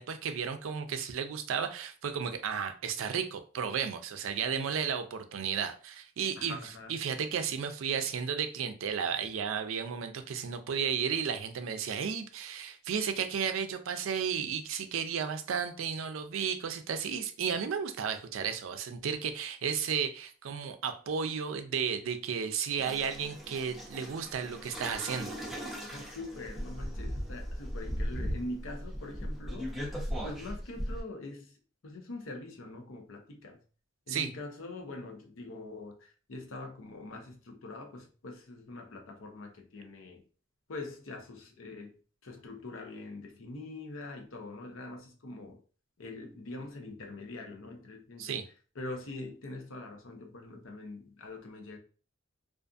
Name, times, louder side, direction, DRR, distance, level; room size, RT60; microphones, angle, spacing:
voice 1, 0.0-6.6 6.9-25.3 34.1-34.3 48.2-48.5, right 7 dB, 85° right, 0.4 m, -33 dB
voice 2, 6.4-7.0 25.9-33.6 34.1-40.2 40.7-41.9 42.2-45.6 46.0-48.4 48.7-51.8, left 2 dB, 85° left, 0.7 m, -43 dB
sound 1, 22.8-31.0, equal, ahead, 0.7 m, -38 dB
2.4 x 2.3 x 2.5 m
head